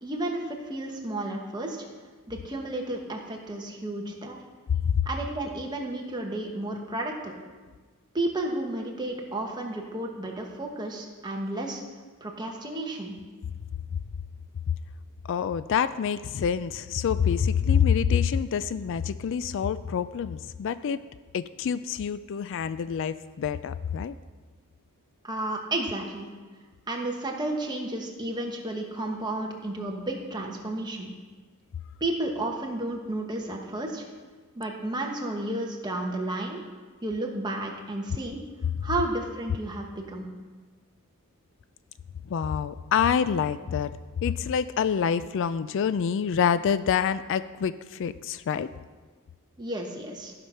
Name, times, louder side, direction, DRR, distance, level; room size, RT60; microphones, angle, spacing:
voice 1, 0.0-1.8 2.3-4.4 5.0-7.3 8.1-11.8 12.2-13.2 25.2-26.3 26.9-31.1 32.0-34.1 34.5-36.6 37.0-38.4 38.8-40.3 49.6-50.3, right 1 dB, 20° right, 0 dB, 1.3 m, -32 dB
voice 2, 15.3-21.0 21.3-24.1 42.3-44.0 44.2-48.7, left 7 dB, 60° left, 14 dB, 0.3 m, -26 dB
13.5 x 6.0 x 5.6 m, 1.4 s
head